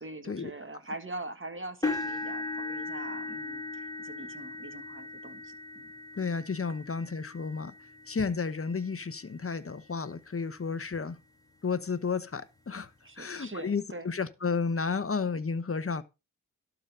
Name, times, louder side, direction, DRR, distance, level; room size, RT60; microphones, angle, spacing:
voice 1, 0.0-5.9 13.0-14.1, right 2 dB, 30° right, 1.8 m, -43 dB
sound 1, 1.8-9.9 10.5-10.7 11.2-11.3 12.7-12.8, left 3 dB, 10° left, 2.5 m, -38 dB
voice 2, 6.2-7.7 8.1-11.2 11.6-12.9 13.2-16.0, left 5 dB, 35° left, 1.0 m, -32 dB
12.0 x 4.1 x 6.7 m
cardioid pair, 55°, 38 cm